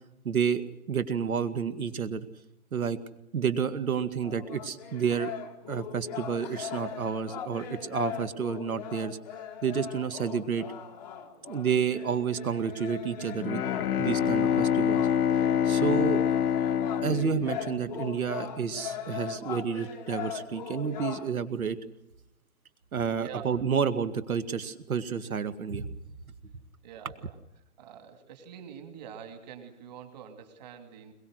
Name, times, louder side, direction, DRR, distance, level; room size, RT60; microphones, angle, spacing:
voice 1, 0.2-0.6 0.9-2.3 2.7-3.0 3.3-5.3 5.7-9.2 9.6-10.6 11.5-13.6 14.0-15.1 15.6-16.2 17.0-21.8 22.9-25.9, right 7 dB, 70° right, 12 dB, 2.1 m, -30 dB
sound 1, 4.2-21.3, left 8 dB, 5° left, 0.8 m, -40 dB
Bowed string instrument, 13.3-18.2, left 8 dB, 85° left, 0.7 m, -26 dB
voice 2, 23.1-23.5 26.8-27.4 27.8-31.1, right 8 dB, 30° right, 6 dB, 2.7 m, -45 dB
22.0 x 22.0 x 6.5 m, 0.90 s
hypercardioid pair, 165°, 44 cm